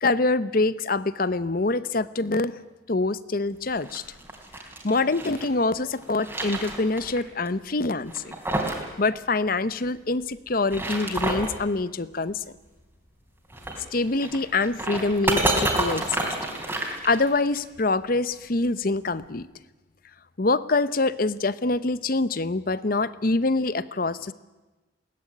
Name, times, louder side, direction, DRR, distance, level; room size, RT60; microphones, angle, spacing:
voice 1, 0.0-2.6 2.9-4.0 4.8-8.3 9.0-12.4 13.9-16.3 16.7-19.5 20.4-24.3, left 3 dB, 45° left, 16 dB, 0.8 m, -25 dB
sound 1, 3.7-5.5 5.9-7.2 7.5-7.6 8.1-8.9 9.1-9.2 10.5-11.6 13.5-17.6, right 1 dB, 10° right, 3.4 m, -29 dB
21.5 x 18.5 x 9.9 m, 1.1 s
head